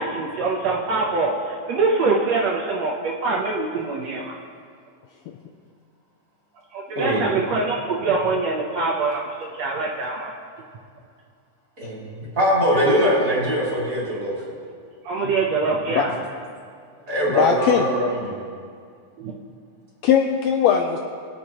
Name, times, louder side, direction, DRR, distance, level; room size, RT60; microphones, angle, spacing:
voice 1, 0.0-4.3 6.7-10.3 15.0-16.1 19.2-19.3, right 3 dB, 70° right, -2 dB, 1.9 m, -24 dB
voice 2, 11.8-14.3 17.1-18.3, equal, 30° right, -6 dB, 3.2 m, -22 dB
voice 3, 17.3-17.9 20.0-21.0, left 8 dB, 85° left, 4 dB, 1.6 m, -19 dB
23.0 x 8.2 x 3.0 m, 2.2 s
omnidirectional pair, 3.6 m